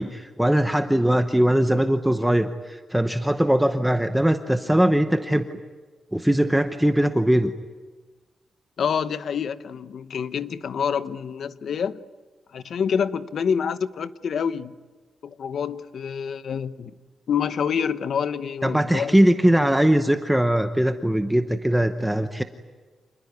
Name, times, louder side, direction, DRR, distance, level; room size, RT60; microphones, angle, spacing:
voice 1, 0.0-5.5 6.1-7.5 18.6-22.4, right 1 dB, 5° right, 0.9 m, -21 dB
voice 2, 8.8-12.0 12.5-14.7 15.2-16.9 17.3-19.1, left 7 dB, 60° left, 0.9 m, -27 dB
27.5 x 20.5 x 9.6 m
wide cardioid pair, 155°, 0 cm